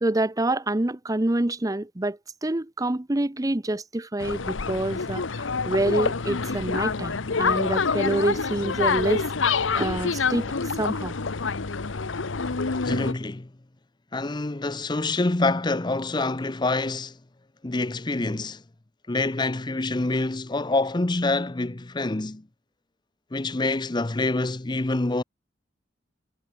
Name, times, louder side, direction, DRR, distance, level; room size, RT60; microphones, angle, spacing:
voice 1, 0.0-11.1, right 1 dB, 20° right, 0.7 m, -27 dB
sound 1, 4.2-13.1, left 4 dB, 85° left, 1.0 m, -27 dB
voice 2, 12.7-13.5 14.1-17.2 17.6-18.6 19.1-22.4 23.3-25.2, left 2 dB, 25° left, 0.7 m, -26 dB
head